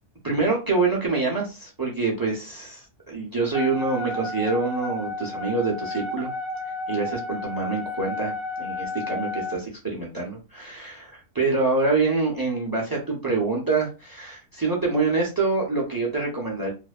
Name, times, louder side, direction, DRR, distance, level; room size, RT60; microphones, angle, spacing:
voice 1, 0.2-6.3 6.9-8.3 8.6-16.7, right 3 dB, 35° right, -4 dB, 0.3 m, -26 dB
Wind instrument woodwind instrument, 3.5-9.6, left 2 dB, 25° left, 0.8 m, -32 dB
2.5 x 2.1 x 2.3 m, 0.30 s
omnidirectional pair, 1.4 m